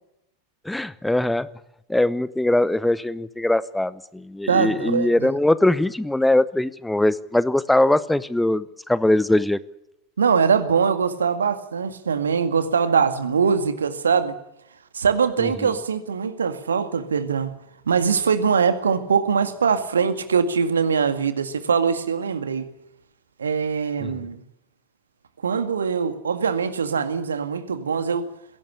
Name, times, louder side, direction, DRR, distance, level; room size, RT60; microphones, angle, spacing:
voice 1, 0.6-1.5 1.9-9.6 15.4-15.7 24.0-24.2, left 1 dB, 5° left, 0.8 m, -21 dB
voice 2, 4.5-5.3 10.2-14.3 14.9-17.5 17.9-22.7 23.4-24.4 25.4-28.3, right 6 dB, 70° right, 2.0 m, -22 dB
21.5 x 17.5 x 9.9 m
figure-of-eight pair, 90°, 0 cm